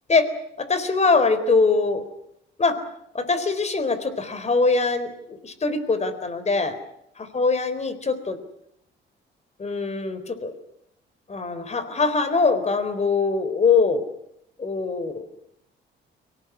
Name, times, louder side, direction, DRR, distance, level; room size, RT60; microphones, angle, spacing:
voice 1, 0.6-2.0 2.6-2.8 3.1-6.8 7.3-8.4 9.6-10.5 11.3-14.1 14.6-15.3, left 4 dB, 35° left, 12 dB, 4.1 m, -22 dB
24.0 x 18.0 x 9.9 m, 0.77 s
cardioid pair, 90°, 20 cm